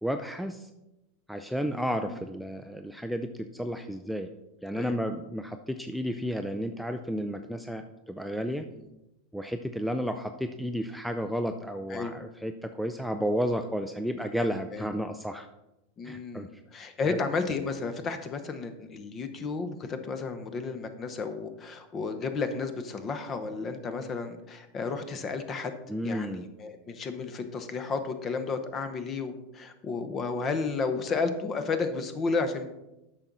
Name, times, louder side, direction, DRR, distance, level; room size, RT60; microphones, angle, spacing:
voice 1, 0.0-0.7 1.3-4.3 4.6-8.7 9.3-15.5 16.0-16.5 17.1-17.2 25.9-26.5, equal, ahead, 6 dB, 0.4 m, -32 dB
voice 2, 1.6-2.2 4.7-5.0 8.7-8.9 11.9-12.2 14.7-14.9 16.0-25.8 26.0-32.7, left 4 dB, 30° left, 9 dB, 0.8 m, -32 dB
8.6 x 6.1 x 4.0 m, 0.94 s
supercardioid pair, 135°, 0 cm